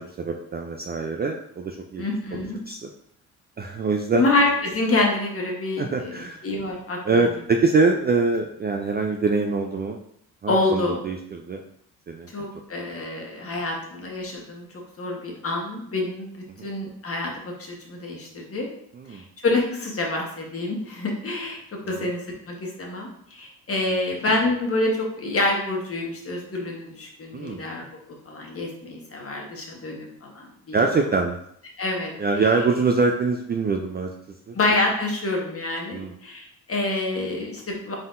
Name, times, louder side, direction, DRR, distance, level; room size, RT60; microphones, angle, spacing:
voice 1, 0.0-2.1 2.7-2.9 3.6-4.2 5.8-6.5 7.0-10.0 10.4-11.6 12.1-12.5 16.6-16.7 18.9-19.2 21.9-22.1 27.3-27.6 30.7-31.4 32.2-34.1 34.5-34.6 35.9-36.2, right 4 dB, 25° right, 3 dB, 0.4 m, -24 dB
voice 2, 2.0-2.6 4.2-7.0 10.5-11.0 12.3-14.7 15.0-18.7 19.1-21.6 21.9-22.2 22.5-27.8 28.3-30.8 31.8-32.1 34.5-37.9, left 2 dB, 35° left, 0 dB, 1.3 m, -27 dB
3.9 x 3.8 x 2.5 m, 0.69 s
supercardioid pair, 70°, 39 cm